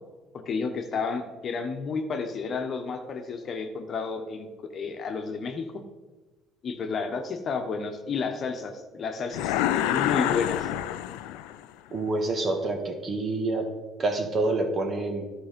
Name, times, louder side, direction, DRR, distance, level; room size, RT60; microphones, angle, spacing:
voice 1, 0.5-5.8 6.6-10.7, left 5 dB, 45° left, 5 dB, 1.1 m, -31 dB
sound 1, 9.3-11.7, left 12 dB, 80° left, 0.4 m, -27 dB
voice 2, 11.9-13.7 14.0-15.2, right 2 dB, 40° right, 4 dB, 1.7 m, -27 dB
11.0 x 4.9 x 5.3 m, 1.2 s
supercardioid pair, 70°, 0 cm